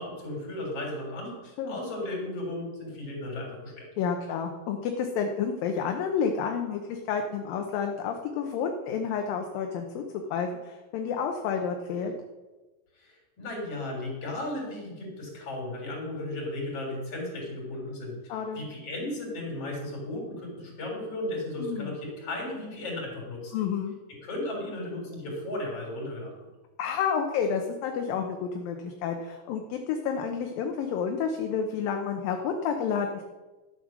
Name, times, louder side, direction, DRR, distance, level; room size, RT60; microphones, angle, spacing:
voice 1, 0.0-1.4 1.7-3.9 12.9-23.5 24.2-26.3, left 1 dB, 35° left, -1 dB, 4.5 m, -35 dB
voice 2, 4.0-10.0 10.3-12.1 18.3-18.7 21.6-22.0 23.5-24.0 26.8-33.2, left 6 dB, 75° left, 4 dB, 2.3 m, -30 dB
12.0 x 8.9 x 6.1 m, 1.2 s
omnidirectional pair, 4.7 m